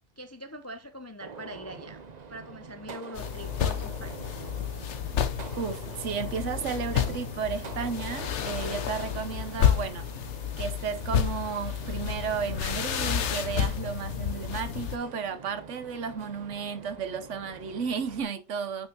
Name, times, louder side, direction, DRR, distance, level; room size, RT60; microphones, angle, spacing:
voice 1, 0.2-2.0 2.3-4.3, right 1 dB, 25° left, 0.4 m, -42 dB
Gunshot gunfire, 1.2-18.2, right 5 dB, 40° right, 0.8 m, -45 dB
sound 1, 3.2-15.0, left 9 dB, 70° left, 1.1 m, -30 dB
voice 2, 5.6-10.1 10.6-18.9, right 6 dB, 75° right, 1.2 m, -33 dB
9.0 x 5.7 x 2.8 m
omnidirectional pair, 1.3 m